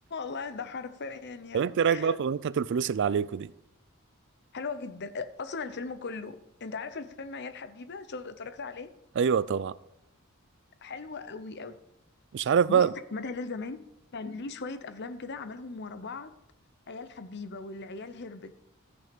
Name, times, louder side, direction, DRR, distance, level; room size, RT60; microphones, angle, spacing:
voice 1, 0.1-2.2 4.5-8.9 10.8-11.8 12.4-13.8 14.1-16.3 16.9-18.5, left 4 dB, 55° left, 0.8 m, -38 dB
voice 2, 1.5-3.5 9.2-9.7 12.3-12.9, right 7 dB, 55° right, 0.3 m, -25 dB
13.5 x 6.2 x 5.2 m
head